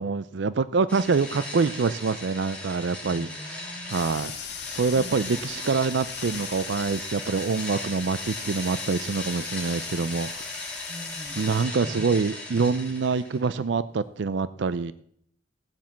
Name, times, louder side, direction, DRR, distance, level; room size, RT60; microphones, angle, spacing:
voice 1, 0.0-4.4 4.7-10.5 11.4-14.9, right 4 dB, 80° right, 15 dB, 0.5 m, -26 dB
sound 1, 0.9-13.5, left 2 dB, 5° left, 3.3 m, -38 dB
voice 2, 3.1-4.0 4.9-5.9 10.9-11.4 11.8-12.1, equal, 30° right, 7 dB, 1.3 m, -43 dB
sound 2, 3.9-11.6, left 7 dB, 65° left, 2.1 m, -40 dB
17.0 x 7.4 x 7.4 m, 0.68 s
head